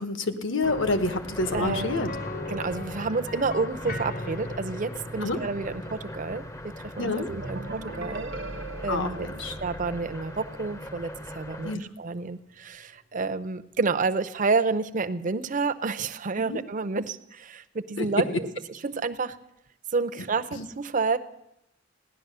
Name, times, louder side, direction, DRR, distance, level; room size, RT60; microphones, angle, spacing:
voice 1, 0.0-2.1 5.2-5.4 7.0-7.3 8.9-9.5 11.6-11.9 16.5-16.6 18.0-18.1 20.1-20.2 20.5-20.7, left 3 dB, 65° left, 9 dB, 1.1 m, -28 dB
sound 1, 0.6-11.8, left 1 dB, 15° left, 0.6 m, -40 dB
sound 2, 1.4-11.2 11.5-11.6 14.0-14.1, left 2 dB, 45° left, 0.9 m, -40 dB
voice 2, 1.5-2.1 2.5-8.3 8.8-9.3 9.6-11.1 11.3-18.3 18.8-19.4 19.9-21.2, right 4 dB, 40° right, 11 dB, 0.6 m, -29 dB
sound 3, 7.3-11.0, right 2 dB, 70° right, 0.9 m, -39 dB
16.5 x 11.0 x 6.7 m, 0.85 s
head